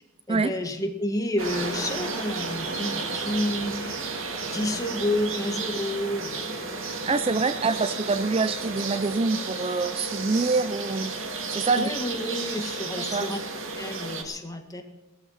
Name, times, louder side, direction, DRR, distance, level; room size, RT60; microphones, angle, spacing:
voice 1, 0.3-4.1 4.5-7.1 11.8-13.4 13.8-14.8, left 1 dB, 15° left, 4 dB, 1.8 m, -30 dB
sound 1, 1.4-14.2, right 4 dB, 65° right, 2.3 m, -33 dB
voice 2, 7.0-11.1 11.5-11.9 13.0-13.3, right 3 dB, 25° right, 12 dB, 0.4 m, -25 dB
17.5 x 13.5 x 5.7 m, 1.1 s
head